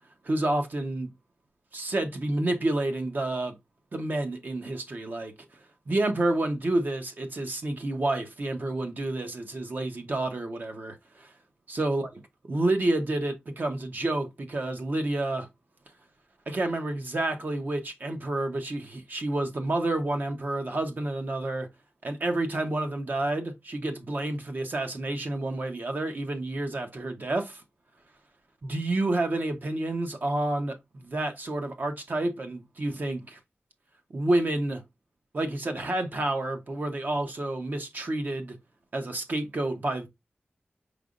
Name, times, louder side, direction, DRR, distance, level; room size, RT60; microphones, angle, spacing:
voice 1, 0.2-1.1 1.7-3.6 3.9-5.3 5.9-11.3 11.7-12.1 12.5-15.5 16.5-21.7 22.0-27.6 28.6-33.4 34.1-34.8 35.3-38.5 38.9-40.1, right 2 dB, 55° right, 0.8 m, -29 dB
5.0 x 3.3 x 2.5 m
wide cardioid pair, 95°, 4 cm